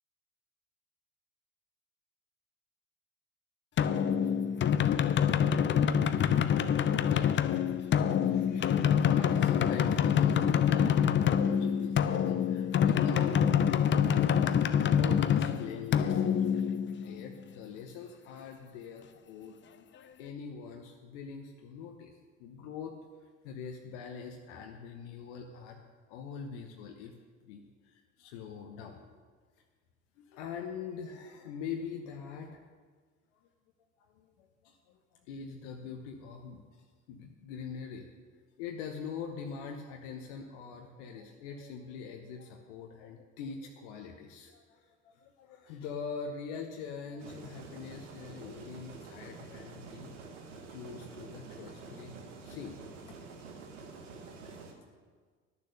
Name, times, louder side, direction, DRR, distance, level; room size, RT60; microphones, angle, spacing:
sound 1, 3.8-17.3, left 8 dB, 30° left, 0.6 m, -26 dB
voice 1, 7.1-7.6 8.1-8.8 9.0-13.6 14.1-16.4 17.0-19.6 19.9-23.0 23.4-25.8 26.1-27.1 27.4-29.2 30.2-32.6 34.0-38.1 38.6-50.1 50.7-52.8 53.1-53.2, left 6 dB, 70° left, 3 dB, 1.0 m, -43 dB
sound 2, 47.2-54.7, right 4 dB, 80° right, 1.2 m, -48 dB
11.5 x 6.9 x 6.6 m, 1.5 s
hypercardioid pair, 60°, 36 cm